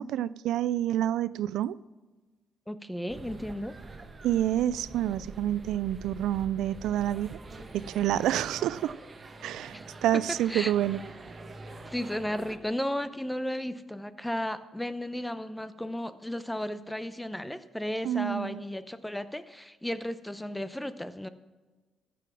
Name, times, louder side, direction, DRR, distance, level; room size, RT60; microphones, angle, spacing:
voice 1, 0.0-1.8 4.2-7.4 7.7-8.9 9.4-11.0 18.0-18.6, right 12 dB, 85° right, 18 dB, 0.3 m, -28 dB
voice 2, 2.7-3.7 9.7-9.9 10.1-10.2 10.5-10.7 11.9-21.3, left 1 dB, 5° left, 13 dB, 0.7 m, -34 dB
sound 1, 3.1-12.6, right 2 dB, 30° right, 1.2 m, -45 dB
14.5 x 7.0 x 6.0 m, 1.3 s
cardioid pair, 90°, 0 cm